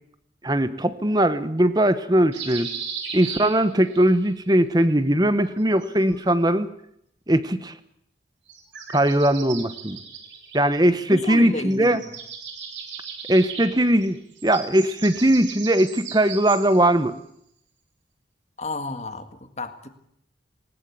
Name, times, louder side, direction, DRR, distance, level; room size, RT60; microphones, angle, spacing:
voice 1, 0.4-2.7 3.1-6.7 7.3-7.7 8.9-10.0 10.5-12.0 13.3-14.2 14.4-17.1, right 1 dB, 20° right, 12 dB, 1.1 m, -20 dB
sound 1, 2.3-4.1 5.5-6.5 8.5-11.4 11.7-16.9, right 6 dB, 80° right, 3.9 m, -38 dB
voice 2, 11.1-12.1 18.6-19.9, left 2 dB, 35° left, 8 dB, 1.8 m, -31 dB
19.5 x 19.5 x 8.5 m, 0.72 s
head